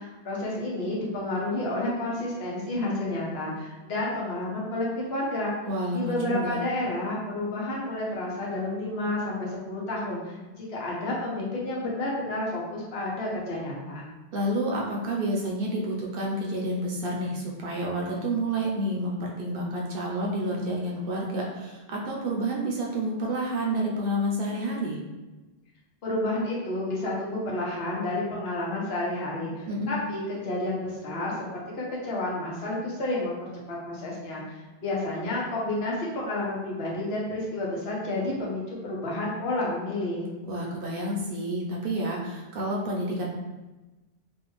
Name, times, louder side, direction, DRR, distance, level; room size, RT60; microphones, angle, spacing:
voice 1, 0.0-5.5 5.9-14.1 26.0-31.3 31.7-40.3, left 1 dB, 80° left, -4 dB, 1.0 m, -30 dB
voice 2, 5.6-6.6 14.3-25.0 29.7-30.0 40.5-43.3, right 1 dB, 65° right, -2 dB, 0.7 m, -29 dB
2.5 x 2.3 x 2.9 m, 1.1 s
omnidirectional pair, 1.1 m